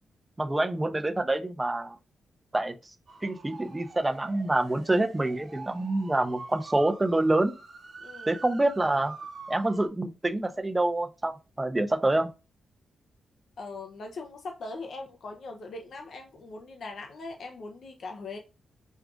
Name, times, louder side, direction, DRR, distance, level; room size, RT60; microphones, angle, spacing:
voice 1, 0.4-2.0 2.5-2.7 3.2-7.5 8.3-9.1 9.5-12.3, right 2 dB, 15° right, 0.5 m, -26 dB
sound 1, 3.1-9.9, right 4 dB, 50° right, 1.0 m, -46 dB
voice 2, 8.0-8.4 13.6-18.4, left 3 dB, 60° left, 0.5 m, -40 dB
6.0 x 2.4 x 2.4 m
wide cardioid pair, 135°, 0 cm